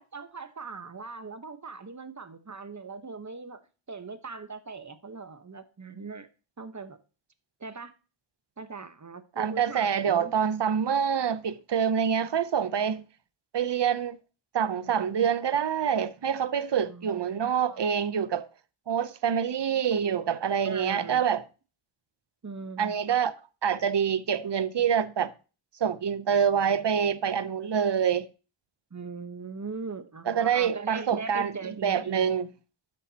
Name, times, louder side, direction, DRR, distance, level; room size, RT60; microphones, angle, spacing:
voice 1, 0.0-3.6 3.9-6.3 6.6-7.0 7.6-7.9 8.6-10.3 16.8-17.2 17.5-17.8 20.6-21.2 22.4-23.0 28.9-32.3, right 4 dB, 35° right, 1.1 m, -40 dB
voice 2, 9.4-13.0 13.5-14.2 14.5-18.5 18.9-21.4 22.8-23.3 23.6-25.3 25.8-28.3 30.3-32.5, right 7 dB, 55° right, 0.7 m, -26 dB
12.0 x 8.4 x 2.8 m
wide cardioid pair, 85°, 50 cm